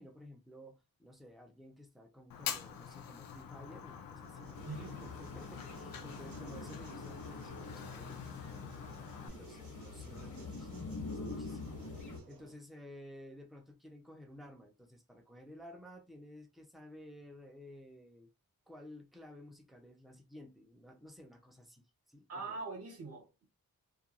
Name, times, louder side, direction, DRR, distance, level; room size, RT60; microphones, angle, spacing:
voice 1, 0.0-18.3 18.7-22.6, left 1 dB, ahead, 0.4 m, -54 dB
Fire, 2.3-9.3, left 8 dB, 75° left, 0.5 m, -46 dB
sound 1, 4.2-12.6, right 6 dB, 85° right, 0.7 m, -57 dB
sound 2, 4.5-12.2, left 3 dB, 60° left, 0.8 m, -46 dB
voice 2, 4.7-5.0 22.3-23.5, right 4 dB, 45° right, 0.8 m, -43 dB
2.4 x 2.2 x 2.8 m
wide cardioid pair, 165°, 34 cm